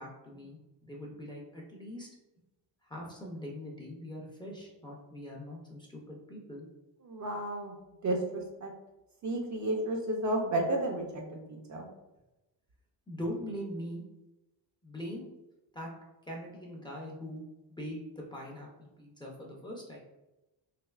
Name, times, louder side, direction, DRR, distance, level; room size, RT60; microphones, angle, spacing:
voice 1, 0.0-2.1 2.8-6.7 13.1-14.0 14.8-15.3 15.7-15.9 16.3-17.4 17.7-20.0, equal, 10° left, -3 dB, 0.4 m, -42 dB
voice 2, 7.1-7.7 8.0-8.7 9.2-11.9, right 1 dB, 40° right, 2 dB, 0.5 m, -32 dB
3.3 x 3.0 x 2.3 m, 1.0 s
cardioid pair, 135°, 45 cm